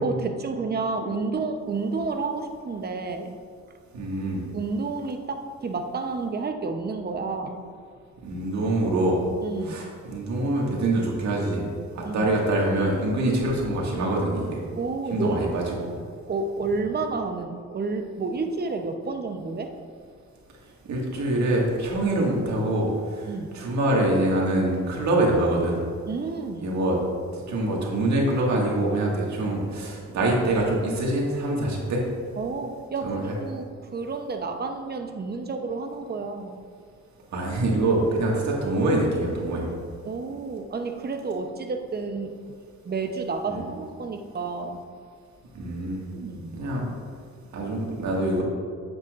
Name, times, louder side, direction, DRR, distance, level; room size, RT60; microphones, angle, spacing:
voice 1, 0.0-3.4 4.5-7.7 9.4-9.9 12.0-12.3 14.8-15.6 16.3-19.7 23.2-23.6 26.1-26.7 29.3-29.5 32.4-36.6 40.0-42.3 42.8-44.8 46.1-46.6, right 4 dB, 35° right, 6 dB, 0.8 m, -30 dB
voice 2, 3.9-4.5 8.2-9.2 9.7-11.7 12.0-14.6 15.1-15.6 20.9-25.8 26.6-27.0 27.5-32.0 33.0-33.2 37.3-39.6 43.5-43.6 45.6-46.0 46.6-46.9 47.5-48.4, right 1 dB, 65° right, -2 dB, 1.9 m, -24 dB
9.1 x 7.4 x 2.5 m, 2.1 s
cardioid pair, 90°, 30 cm